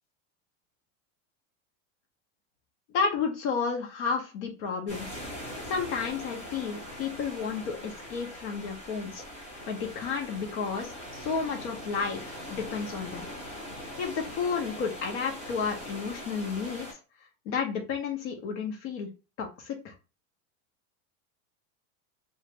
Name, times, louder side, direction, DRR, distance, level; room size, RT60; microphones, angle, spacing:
voice 1, 2.9-5.2 5.7-9.2 9.7-13.3 14.0-17.0 17.5-19.1 19.4-19.9, left 5 dB, 60° left, 2 dB, 0.8 m, -32 dB
sound 1, 4.9-16.9, equal, 15° left, 0.7 m, -41 dB
2.4 x 2.4 x 3.0 m, 0.31 s
supercardioid pair, 165°, 39 cm